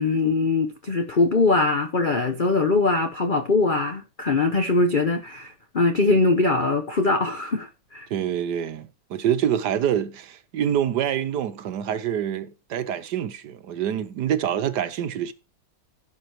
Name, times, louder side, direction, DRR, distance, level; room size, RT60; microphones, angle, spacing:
voice 1, 0.0-8.1, left 3 dB, 60° left, 0.5 m, -22 dB
voice 2, 8.1-15.3, right 9 dB, 65° right, 1.3 m, -26 dB
16.5 x 6.0 x 3.1 m
omnidirectional pair, 2.1 m